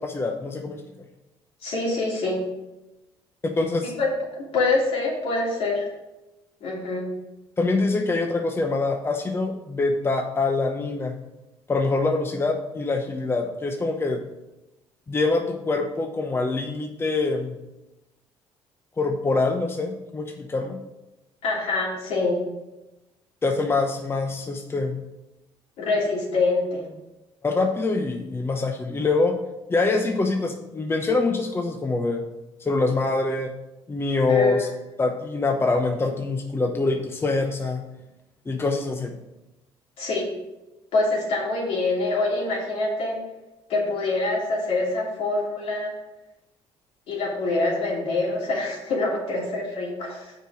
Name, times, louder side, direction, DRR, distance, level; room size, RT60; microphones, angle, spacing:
voice 1, 0.0-0.8 3.4-3.9 7.6-11.1 11.7-14.2 15.1-17.6 19.0-20.8 23.4-25.0 27.4-29.4 29.7-32.2 32.6-33.5 33.9-34.7 35.0-37.8 38.5-39.1, left 3 dB, 20° left, 3 dB, 0.8 m, -24 dB
voice 2, 1.6-2.5 4.0-4.1 4.3-5.9 6.6-7.1 21.4-22.4 25.8-26.8 34.3-34.7 40.0-40.2 40.9-43.2 43.7-46.0 47.1-50.3, left 3 dB, 70° left, -3 dB, 2.9 m, -25 dB
6.5 x 4.8 x 6.2 m, 0.99 s
cardioid pair, 85°, 10 cm